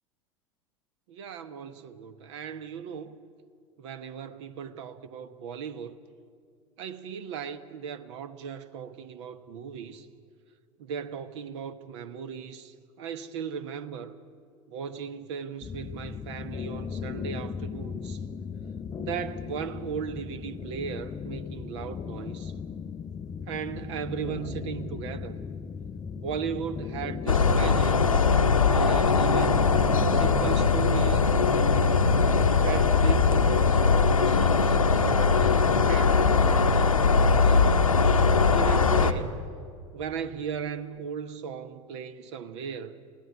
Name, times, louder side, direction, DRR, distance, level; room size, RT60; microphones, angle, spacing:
voice 1, 1.1-3.1 3.8-6.0 6.8-10.1 10.8-14.1 14.7-18.2 19.0-22.5 23.5-25.4 26.2-28.0 28.6-29.7 30.1-31.3 32.6-37.6 38.5-39.4 39.9-43.0, right 7 dB, 55° right, 1.2 m, -37 dB
sound 1, 15.6-30.7, left 6 dB, 20° left, 0.6 m, -37 dB
sound 2, 27.3-39.1, left 4 dB, 80° left, 1.0 m, -21 dB
27.5 x 17.0 x 9.6 m
figure-of-eight pair, 80°, 17 cm